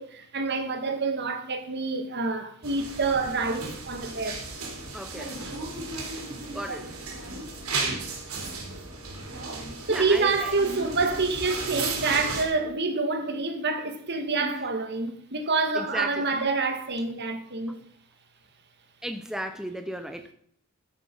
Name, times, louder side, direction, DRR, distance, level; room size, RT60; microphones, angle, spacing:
voice 1, 0.0-4.4 9.8-17.8, right 3 dB, 50° right, 1.9 m, -27 dB
sound 1, 2.6-12.4, right 3 dB, 80° right, 4.0 m, -35 dB
voice 2, 4.9-5.4 6.5-6.9 9.9-10.5 14.4-14.7 15.7-16.4 19.0-20.3, equal, ahead, 0.7 m, -35 dB
14.0 x 8.7 x 5.5 m
head